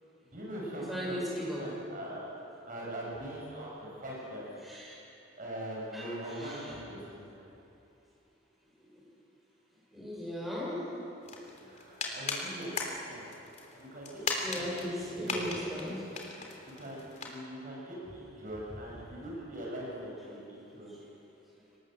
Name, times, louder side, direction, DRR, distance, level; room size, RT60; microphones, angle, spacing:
voice 1, 0.2-2.3 2.7-4.4 5.4-7.5 11.6-13.3 13.7-15.4 16.7-20.9, right 1 dB, 40° right, -4 dB, 6.6 m, -42 dB
voice 2, 0.9-1.6 4.6-4.9 5.9-6.1 6.4-6.7 9.9-11.0 12.2-12.3 14.4-16.5, equal, ahead, -6 dB, 7.1 m, -37 dB
sound 1, 11.2-17.4, left 3 dB, 35° left, 3.3 m, -39 dB
26.0 x 19.5 x 7.8 m, 2.8 s
head